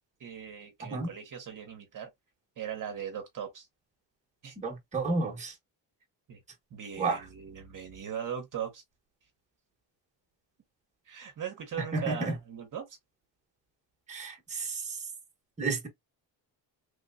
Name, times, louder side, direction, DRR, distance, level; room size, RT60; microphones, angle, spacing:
voice 1, 0.2-2.1 2.6-3.7 4.4-4.5 6.3-6.4 6.7-8.8 11.0-13.0, right 8 dB, 45° right, 0.9 m, -39 dB
voice 2, 4.6-5.5 7.0-7.2 11.9-12.3 14.1-15.0 15.6-15.9, right 3 dB, 15° right, 1.0 m, -31 dB
3.2 x 2.9 x 2.5 m
cardioid pair, 165°, 44 cm